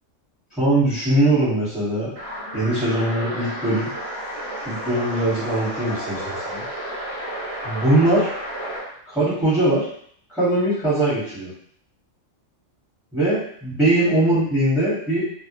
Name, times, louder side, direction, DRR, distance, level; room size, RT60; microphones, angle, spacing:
voice 1, 0.6-2.1 2.5-3.9 4.6-6.6 7.6-8.3 9.1-9.9 10.3-11.5 13.1-15.2, right 1 dB, ahead, -11 dB, 0.9 m, -21 dB
sound 1, 2.2-8.9, equal, 40° right, 0.5 m, -31 dB
2.2 x 2.1 x 2.9 m, 0.63 s
omnidirectional pair, 1.4 m